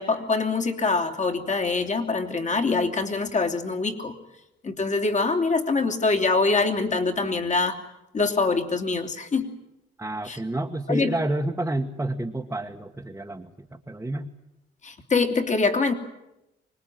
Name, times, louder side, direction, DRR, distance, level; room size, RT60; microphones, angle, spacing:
voice 1, 0.0-4.2 4.6-7.8 8.1-9.5 10.2-10.4 10.9-11.1 14.8-15.9, left 3 dB, 35° left, 4 dB, 3.1 m, -24 dB
voice 2, 10.0-14.3, right 1 dB, 10° right, 1 dB, 1.6 m, -29 dB
25.0 x 20.5 x 9.2 m, 0.91 s
cardioid pair, 90°, 20 cm